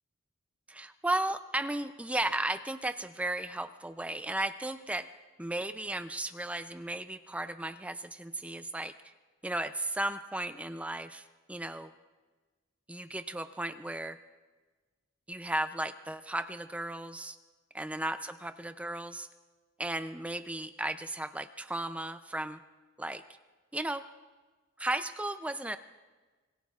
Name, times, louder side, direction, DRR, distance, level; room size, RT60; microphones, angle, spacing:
voice 1, 0.7-5.1 5.4-8.9 9.4-11.9 12.9-14.2 15.3-17.4 17.7-19.3 19.8-22.6 23.0-23.2 23.7-24.1 24.8-25.8, right 1 dB, 5° right, 10 dB, 0.4 m, -35 dB
26.5 x 22.5 x 2.4 m, 1.3 s
head